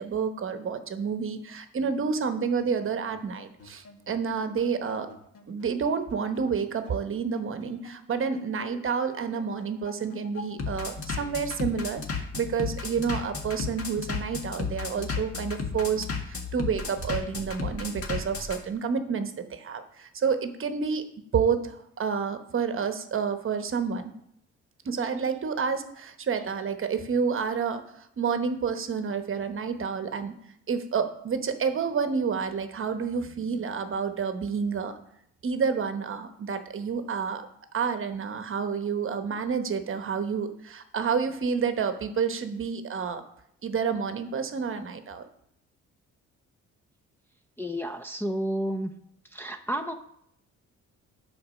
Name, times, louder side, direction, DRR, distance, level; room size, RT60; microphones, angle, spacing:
voice 1, 0.0-5.1 5.5-21.0 21.3-24.1 24.8-30.3 30.7-34.9 35.4-37.5 37.7-43.2 43.6-45.3, right 6 dB, 45° right, 8 dB, 1.0 m, -29 dB
Bass drum, 2.6-18.6, left 4 dB, 50° left, 1.6 m, -34 dB
voice 2, 47.6-48.9 49.3-49.9, equal, 5° left, 2 dB, 0.6 m, -31 dB
8.6 x 4.8 x 6.3 m, 0.72 s
cardioid pair, 90°, 30 cm